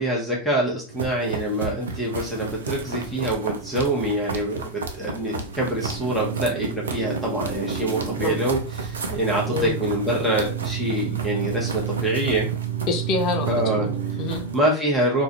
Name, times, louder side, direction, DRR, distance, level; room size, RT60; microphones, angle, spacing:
voice 1, 0.0-4.6 4.9-12.5 13.5-13.9 14.5-15.2, right 1 dB, ahead, 0.8 m, -25 dB
sound 1, 0.9-14.6, right 6 dB, 75° right, 0.4 m, -30 dB
voice 2, 12.9-14.4, left 4 dB, 45° left, 0.4 m, -27 dB
2.3 x 2.2 x 2.7 m
figure-of-eight pair, 90°, 0 cm